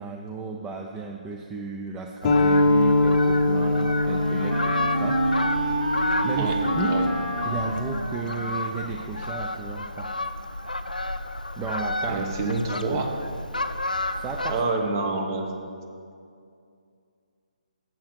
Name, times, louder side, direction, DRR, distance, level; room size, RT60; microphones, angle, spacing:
voice 1, 0.0-5.3 6.2-7.1 7.4-10.2 11.6-13.1 14.1-14.6, right 5 dB, 10° right, 1 dB, 0.3 m, -34 dB
Fowl, 2.2-14.6, left 2 dB, 80° left, 0.4 m, -32 dB
sound 1, 2.2-7.4, left 2 dB, 25° left, 0.7 m, -23 dB
Wind instrument woodwind instrument, 3.1-8.9, right 1 dB, 80° right, 1.1 m, -28 dB
voice 2, 12.1-13.1 14.5-15.5, right 3 dB, 30° right, 3 dB, 0.9 m, -27 dB
7.5 x 5.6 x 7.4 m, 2.4 s
figure-of-eight pair, 140°, 4 cm